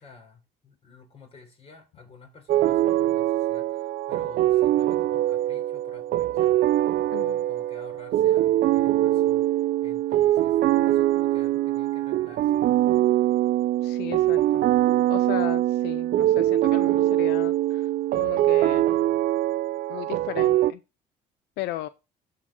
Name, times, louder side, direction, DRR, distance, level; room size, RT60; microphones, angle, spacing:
voice 1, 0.0-9.5 9.8-12.8, left 4 dB, 35° left, 4.1 m, -50 dB
sound 1, 2.5-20.7, right 14 dB, 65° right, 0.5 m, -23 dB
voice 2, 13.8-14.7 15.1-17.9 18.2-18.9 19.9-20.8 21.6-21.9, left 15 dB, 90° left, 0.6 m, -35 dB
13.0 x 5.0 x 4.4 m
cardioid pair, 110°, 17 cm